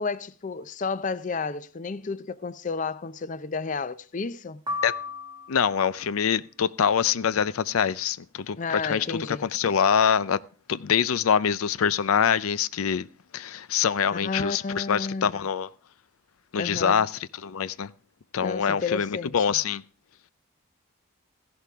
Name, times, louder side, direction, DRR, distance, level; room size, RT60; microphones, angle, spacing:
voice 1, 0.0-4.6 8.6-9.5 14.2-15.3 16.6-17.0 18.4-19.5, left 4 dB, 35° left, 0.5 m, -31 dB
sound 1, 4.7-5.9, left 3 dB, 20° right, 1.3 m, -34 dB
voice 2, 5.5-10.4 10.7-13.1 13.3-15.7 16.5-17.1 17.4-17.9 18.3-19.8, left 7 dB, 85° left, 0.5 m, -24 dB
15.0 x 11.0 x 3.5 m
head